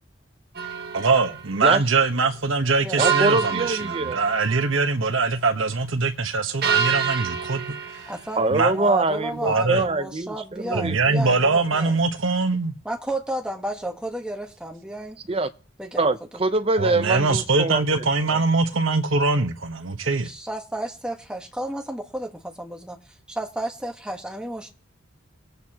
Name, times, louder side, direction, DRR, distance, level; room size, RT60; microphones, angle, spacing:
sound 1, 0.5-1.4 3.0-4.8 6.6-8.3, right 7 dB, 50° right, 1.3 m, -27 dB
voice 1, 0.9-7.8 8.5-8.7 9.4-9.8 10.7-12.7 16.8-20.3, right 3 dB, 75° right, 1.1 m, -22 dB
voice 2, 3.0-4.2 8.4-11.2 15.3-15.5 16.0-18.4, right 2 dB, 30° right, 0.7 m, -24 dB
voice 3, 8.1-8.4 8.7-12.0 12.8-15.2 15.8-16.1 20.2-23.0 23.3-24.7, right 1 dB, 5° right, 1.3 m, -32 dB
22.0 x 8.1 x 2.9 m
head